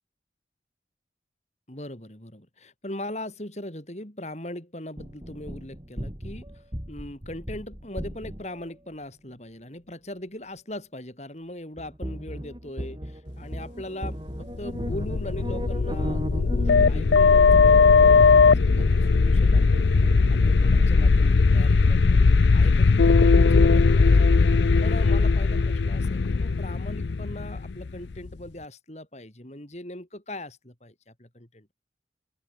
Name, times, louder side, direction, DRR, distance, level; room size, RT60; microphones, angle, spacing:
voice 1, 1.7-14.2 14.6-24.1 24.4-31.7, left 1 dB, 40° left, 3.9 m, -40 dB
sound 1, 5.0-8.7 11.8-20.9, equal, 25° right, 3.9 m, -36 dB
sound 2, 14.6-28.3, left 4 dB, 85° left, 0.5 m, -19 dB
open air
head